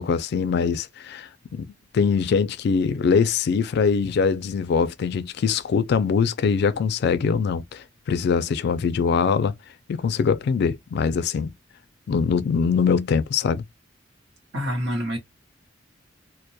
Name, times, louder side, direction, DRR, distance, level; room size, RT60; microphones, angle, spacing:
voice 1, 0.0-9.5 9.9-11.5 12.1-13.6, left 6 dB, 60° left, 0.3 m, -23 dB
voice 2, 14.5-15.2, equal, 65° right, 1.0 m, -26 dB
2.2 x 2.1 x 2.7 m
head